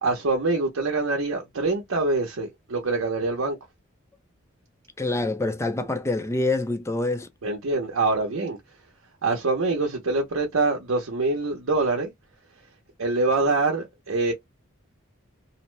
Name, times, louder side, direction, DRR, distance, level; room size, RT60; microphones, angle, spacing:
voice 1, 0.0-3.6 7.4-8.6 9.2-12.1 13.0-14.3, right 3 dB, 75° right, 0.7 m, -25 dB
voice 2, 5.0-7.3, left 2 dB, 15° left, 0.5 m, -26 dB
2.7 x 2.0 x 3.1 m
head